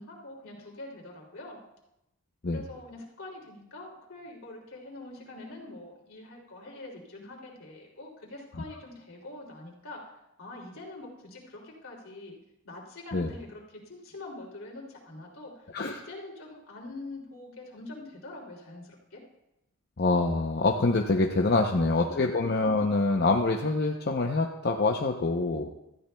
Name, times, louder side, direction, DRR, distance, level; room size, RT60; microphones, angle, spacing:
voice 1, 0.0-1.6 2.5-10.0 10.4-12.4 12.6-19.2 21.5-21.6, left 2 dB, 75° left, -2 dB, 2.9 m, -44 dB
voice 2, 20.0-25.7, left 3 dB, 50° left, 2 dB, 0.7 m, -25 dB
17.0 x 13.5 x 2.3 m, 0.88 s
head